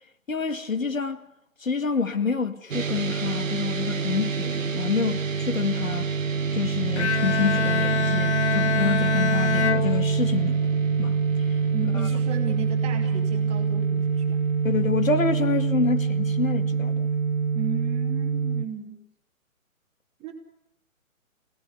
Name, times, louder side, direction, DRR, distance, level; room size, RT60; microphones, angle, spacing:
voice 1, 0.3-1.2 1.6-6.1 6.5-10.6 11.0-11.2 14.6-17.1, left 4 dB, 70° left, 2.3 m, -27 dB
sound 1, 2.7-18.7, right 5 dB, 65° right, 1.2 m, -25 dB
Bowed string instrument, 7.0-10.7, left 7 dB, 55° left, 0.9 m, -26 dB
voice 2, 11.7-14.4 17.5-19.0 20.2-20.3, right 6 dB, 15° right, 2.9 m, -35 dB
27.5 x 18.5 x 9.6 m
figure-of-eight pair, 135°, 42 cm